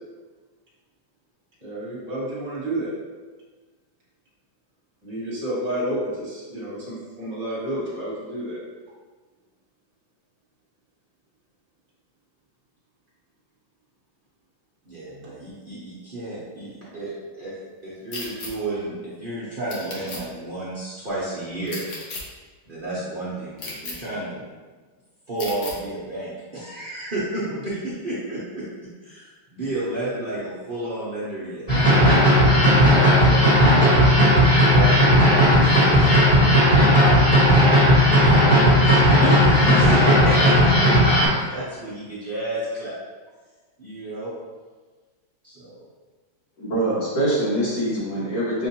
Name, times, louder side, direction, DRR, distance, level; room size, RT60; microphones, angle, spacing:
voice 1, 1.6-2.9 5.0-8.6, right 1 dB, 20° right, -8 dB, 1.5 m, -30 dB
voice 2, 14.8-17.5 17.8-21.8 22.7-24.4 25.3-32.2 32.8-38.5 38.8-42.9 43.8-44.3 45.4-45.8, right 2 dB, 45° right, -10 dB, 0.7 m, -32 dB
sound 1, 18.1-18.5 19.7-20.2 21.7-22.2 23.6-23.9 25.4-25.7, left 3 dB, 55° left, 0.8 m, -34 dB
sound 2, 31.7-41.3, equal, 25° left, 1.3 m, -15 dB
voice 3, 46.6-48.7, right 1 dB, 75° left, -9 dB, 2.5 m, -24 dB
6.1 x 2.5 x 2.8 m, 1.4 s
omnidirectional pair, 2.1 m